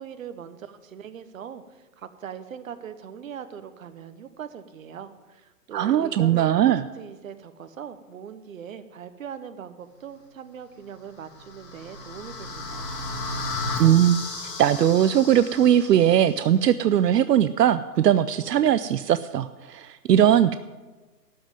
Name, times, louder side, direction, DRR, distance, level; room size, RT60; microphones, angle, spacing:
voice 1, 0.0-12.9, right 8 dB, 55° right, 11 dB, 1.1 m, -40 dB
voice 2, 5.7-6.8 13.8-14.2 14.6-20.6, right 10 dB, 80° right, 13 dB, 0.6 m, -20 dB
sound 1, 11.2-16.3, left 2 dB, 90° left, 3.3 m, -34 dB
12.5 x 5.6 x 9.1 m, 1.2 s
hypercardioid pair, 160°, 48 cm